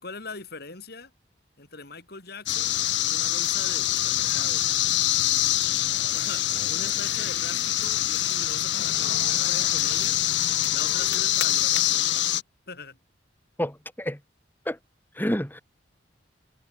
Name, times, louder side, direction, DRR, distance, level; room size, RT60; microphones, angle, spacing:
voice 1, 0.0-1.1 1.6-2.8 3.0-4.7 6.1-10.2 10.7-12.4 12.7-13.0, left 3 dB, 60° left, 4.9 m, -42 dB
sound 1, 2.5-12.4, left 13 dB, 80° left, 1.3 m, -25 dB
voice 2, 13.6-14.2 14.7-14.8 15.1-15.6, equal, 10° left, 4.2 m, -28 dB
head